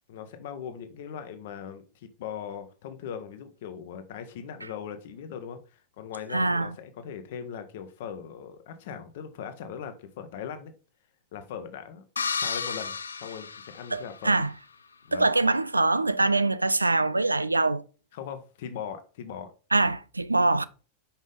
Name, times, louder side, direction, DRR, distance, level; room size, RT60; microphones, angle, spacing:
voice 1, 0.1-10.7 11.3-12.0 12.3-13.0 13.2-14.4 15.1-15.3 18.1-19.5, left 8 dB, 55° left, 1.0 m, -39 dB
voice 2, 6.3-6.7 13.9-14.5 15.1-17.8 19.7-20.6, right 2 dB, 80° right, 0.3 m, -24 dB
sound 1, 12.2-14.4, left 5 dB, 75° left, 0.4 m, -33 dB
5.8 x 5.2 x 3.5 m
figure-of-eight pair, 90°, 0 cm